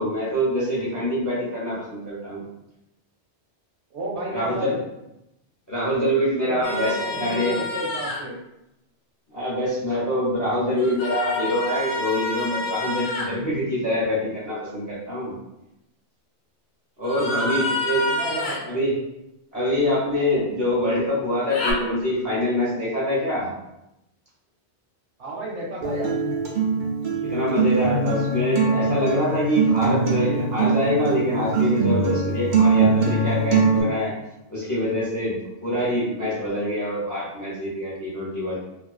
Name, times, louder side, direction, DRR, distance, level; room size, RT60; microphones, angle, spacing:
voice 1, 0.0-2.4 4.3-4.8 5.7-7.6 9.3-15.3 17.0-18.0 18.6-18.9 19.5-23.5 27.2-34.1 34.5-38.6, left 1 dB, 25° left, -7 dB, 0.5 m, -25 dB
voice 2, 3.9-4.7 6.4-8.4 17.2-18.6 25.2-26.2, right 1 dB, 75° right, -4 dB, 1.0 m, -32 dB
sound 1, 6.6-8.2 10.8-13.3 17.0-18.6 21.5-21.7, left 2 dB, 85° left, 0.9 m, -28 dB
Acoustic guitar, 25.8-33.8, right 4 dB, 60° right, 0.6 m, -22 dB
2.4 x 2.3 x 2.3 m, 0.87 s
omnidirectional pair, 1.2 m